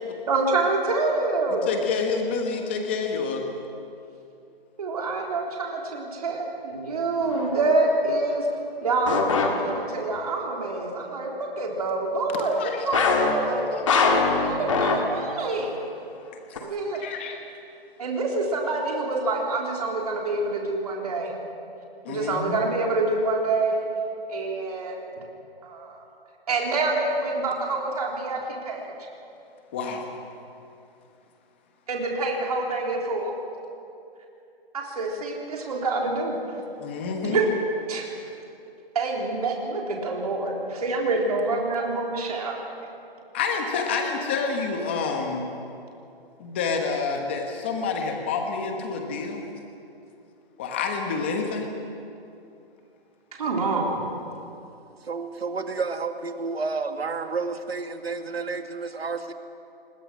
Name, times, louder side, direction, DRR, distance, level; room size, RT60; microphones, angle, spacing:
voice 1, 0.3-1.7 4.8-8.4 8.8-13.7 13.9-15.7 16.6-17.1 18.0-21.4 22.1-23.9 24.3-25.0 25.6-26.0 26.5-28.8 31.9-33.3 34.7-36.4 37.2-37.5 37.9-38.1 38.9-42.5 53.4-54.1, right 3 dB, 40° right, -1 dB, 3.7 m, -26 dB
voice 2, 1.5-3.4 12.3-12.9 16.5-16.7 17.0-17.4 22.0-22.6 29.7-30.1 36.5-37.4 43.3-45.5 46.4-49.4 50.6-51.7, left 5 dB, 10° left, 3 dB, 1.1 m, -28 dB
sound 1, 7.2-7.6 9.1-10.1 12.9-15.4 15.7-15.9 16.6-16.7, left 4 dB, 30° left, 2.1 m, -23 dB
voice 3, 55.0-59.3, right 4 dB, 80° right, 6 dB, 2.1 m, -30 dB
29.5 x 21.0 x 6.3 m, 2.7 s
hypercardioid pair, 175°, 30 cm